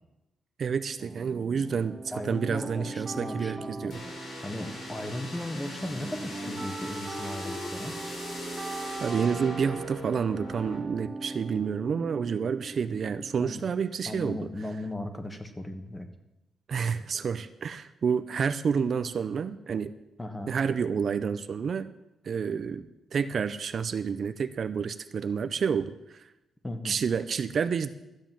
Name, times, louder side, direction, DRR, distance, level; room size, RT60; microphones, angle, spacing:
voice 1, 0.6-2.0 2.3-4.0 9.0-14.5 16.7-19.9 20.5-21.9 22.2-25.9 26.8-27.9, right 6 dB, 55° right, 11 dB, 0.6 m, -29 dB
sound 1, 1.0-13.7, right 3 dB, 20° right, 1.0 m, -40 dB
voice 2, 2.1-3.9 4.4-7.9 13.4-13.6 14.1-16.1 20.2-20.6 26.6-27.0, left 1 dB, 15° left, 8 dB, 1.3 m, -37 dB
sound 2, 3.9-10.8, left 1 dB, 80° left, 5.5 m, -40 dB
13.5 x 7.4 x 7.4 m, 0.95 s
cardioid pair, 115°, 0 cm